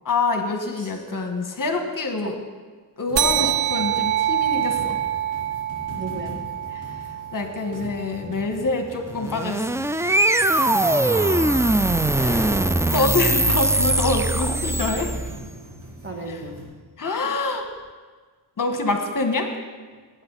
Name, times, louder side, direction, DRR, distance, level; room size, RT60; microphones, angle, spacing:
voice 1, 0.0-2.3 3.0-4.9 7.3-9.8 12.1-12.5 12.9-15.1 17.0-17.6 18.6-19.5, left 3 dB, 50° left, 4 dB, 1.6 m, -25 dB
voice 2, 0.7-1.0 2.2-2.4 3.4-3.6 6.0-6.3 10.8-11.8 14.3-14.5 16.0-16.6, right 2 dB, 30° right, 2 dB, 1.8 m, -35 dB
sound 1, 3.1-16.6, equal, 50° right, 4.5 m, -42 dB
sound 2, 3.2-8.1, right 12 dB, 90° right, 1.1 m, -25 dB
sound 3, 9.1-15.5, right 2 dB, 10° right, 0.3 m, -21 dB
19.0 x 8.9 x 4.1 m, 1.4 s
wide cardioid pair, 90°, 41 cm